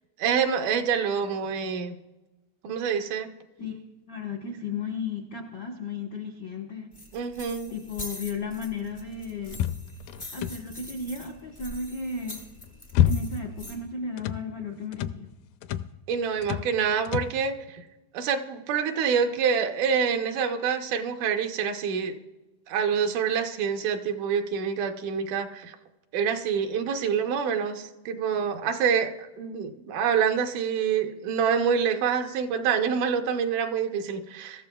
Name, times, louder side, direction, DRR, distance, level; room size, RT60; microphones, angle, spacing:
voice 1, 0.2-1.9 2.6-3.3 7.1-7.7 16.1-17.8 18.1-22.2 22.7-25.8 26.1-34.7, right 7 dB, 75° right, 5 dB, 2.3 m, -26 dB
voice 2, 4.1-6.9 7.7-9.6 10.3-12.4 13.0-15.3, left 4 dB, 70° left, 1 dB, 1.0 m, -34 dB
sound 1, 6.9-13.8, left 1 dB, 30° left, 0.4 m, -44 dB
sound 2, 9.5-10.9 12.4-13.6 13.8-14.5 14.9-15.2 15.6-16.0 16.4-16.8 17.1-17.4, left 10 dB, 85° left, 2.2 m, -28 dB
23.5 x 13.5 x 2.3 m, 1.1 s
omnidirectional pair, 3.7 m